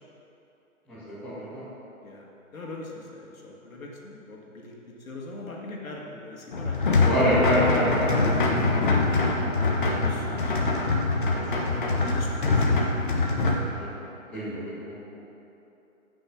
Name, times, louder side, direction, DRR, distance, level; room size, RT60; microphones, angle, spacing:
voice 1, 0.9-1.6 7.0-10.6 13.8-13.9 14.3-14.9, equal, 5° left, -15 dB, 2.2 m, -28 dB
voice 2, 2.5-4.7 5.0-6.8 9.8-12.8, left 2 dB, 80° left, -2 dB, 2.6 m, -41 dB
sound 1, 6.5-13.6, left 3 dB, 40° left, 1.2 m, -24 dB
13.0 x 6.3 x 6.4 m, 2.9 s
hypercardioid pair, 175°, 41 cm